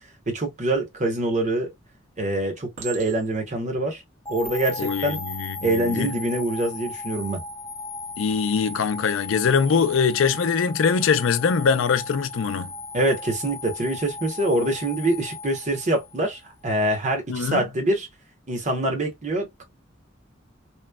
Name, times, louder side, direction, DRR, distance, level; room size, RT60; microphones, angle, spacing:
voice 1, 0.3-1.7 2.2-4.0 4.3-5.2 5.6-7.4 12.9-18.1 18.5-19.6, right 1 dB, 40° right, 0.9 m, -25 dB
Chink clink, 1.8-1.9 2.8-3.6 4.3-4.6, right 9 dB, 75° right, 1.0 m, -41 dB
sound 1, 4.2-16.4, left 2 dB, 15° left, 0.4 m, -36 dB
voice 2, 4.8-6.1 8.2-12.7 17.3-17.6, left 6 dB, 80° left, 0.4 m, -22 dB
3.0 x 2.1 x 2.2 m
head